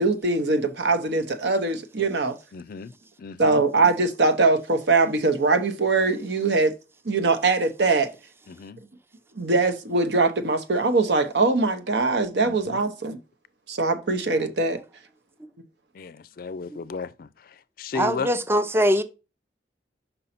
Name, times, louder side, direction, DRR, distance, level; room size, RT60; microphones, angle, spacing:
voice 1, 0.0-2.3 3.4-6.7 7.0-8.1 9.4-13.2 13.7-14.8, right 3 dB, 70° right, 0.9 m, -22 dB
voice 2, 2.5-2.9 3.2-3.6 8.5-8.8 12.4-12.8 15.9-17.3 17.8-18.3, left 5 dB, 55° left, 0.4 m, -34 dB
voice 3, 17.9-19.0, equal, 15° right, 0.5 m, -22 dB
5.5 x 5.4 x 4.2 m
head